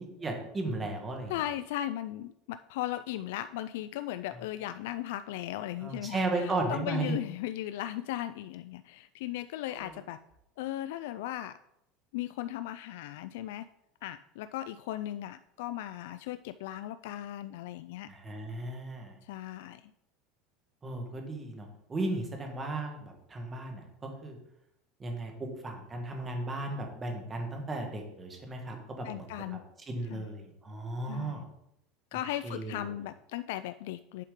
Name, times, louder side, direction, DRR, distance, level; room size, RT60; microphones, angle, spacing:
voice 1, 0.2-1.3 5.8-7.1 9.7-9.9 18.1-19.1 20.8-23.8 24.2-24.4 25.0-29.3 29.9-31.5 32.4-32.8, right 2 dB, 15° right, 3 dB, 1.3 m, -35 dB
voice 2, 1.3-10.2 10.6-11.6 12.1-13.7 14.0-18.1 19.2-19.9 29.0-29.6 30.1-30.3 31.1-31.4 32.1-34.2, left 13 dB, 75° left, 12 dB, 0.3 m, -37 dB
8.3 x 7.1 x 3.7 m, 0.79 s
cardioid pair, 175°, 0 cm